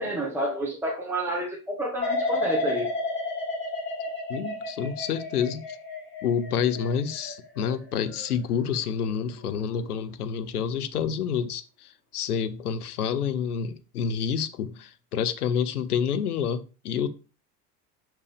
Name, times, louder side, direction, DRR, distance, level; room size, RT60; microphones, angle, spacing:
voice 1, 0.0-2.9, right 1 dB, 5° right, 1.7 m, -29 dB
sound 1, 2.0-8.9 9.4-9.8, left 2 dB, 25° left, 3.7 m, -32 dB
voice 2, 4.3-5.8 6.2-17.1, left 7 dB, 70° left, 0.8 m, -28 dB
6.1 x 5.9 x 3.4 m
figure-of-eight pair, 75°, 47 cm